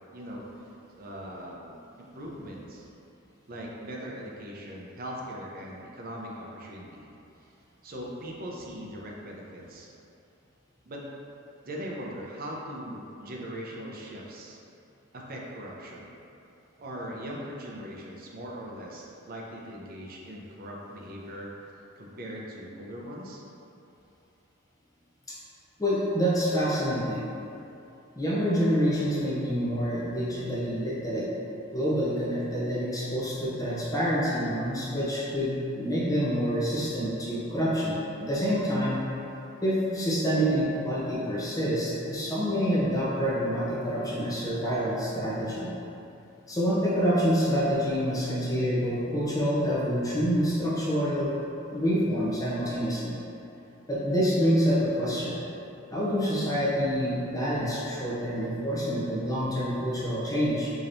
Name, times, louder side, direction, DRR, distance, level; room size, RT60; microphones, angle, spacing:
voice 1, 0.1-0.4 0.9-2.9 3.5-7.1 7.8-9.9 10.9-11.0 11.6-14.6 15.1-16.1 16.8-21.5 22.0-23.4, equal, 45° right, -2 dB, 0.6 m, -40 dB
voice 2, 25.8-27.3 28.2-31.2 31.7-39.0 39.6-45.7 46.5-51.3 51.7-53.1 53.9-55.4 55.9-60.7, equal, 15° left, -8 dB, 0.7 m, -27 dB
5.0 x 2.9 x 2.6 m, 2.8 s
head